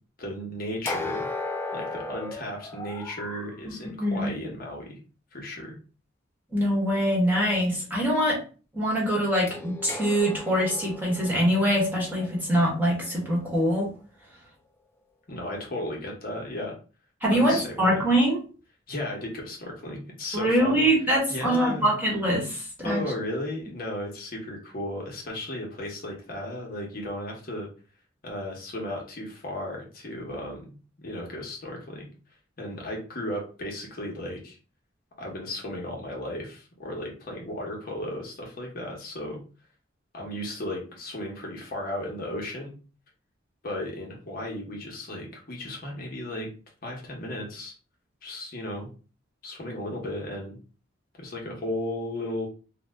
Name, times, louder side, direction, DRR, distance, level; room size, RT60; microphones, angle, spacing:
voice 1, 0.2-1.3 1.7-5.0 5.3-5.8 15.3-16.7 17.3-18.1 18.9-21.9 22.8-27.7 28.2-32.1 32.6-34.6 35.2-39.4 40.1-42.7 43.6-46.5 46.8-47.7 48.2-48.9 49.4-50.6 51.2-52.5, left 1 dB, 50° left, -1 dB, 0.8 m, -35 dB
sound 1, 0.9-3.5 9.5-13.5, left 2 dB, 15° left, 0.3 m, -36 dB
voice 2, 3.6-4.3 6.5-8.4 8.7-13.9 17.2-18.4 20.3-23.0, equal, 10° right, -4 dB, 1.1 m, -24 dB
2.8 x 2.1 x 3.4 m, 0.37 s
head